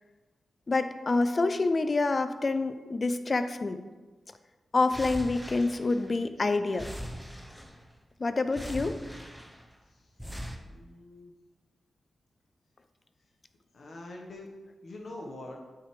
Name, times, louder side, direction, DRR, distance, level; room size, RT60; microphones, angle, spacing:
voice 1, 0.7-3.8 4.7-6.9 8.2-9.0, left 3 dB, 45° left, 10 dB, 0.5 m, -27 dB
sound 1, 4.9-6.4 6.7-8.0 8.5-9.7 10.2-10.6, equal, ahead, 0.9 m, -41 dB
voice 2, 10.6-11.3 13.7-14.5 14.8-15.6, left 1 dB, 65° left, 0 dB, 1.4 m, -44 dB
8.6 x 4.8 x 3.4 m, 1.3 s
cardioid pair, 45°, 0 cm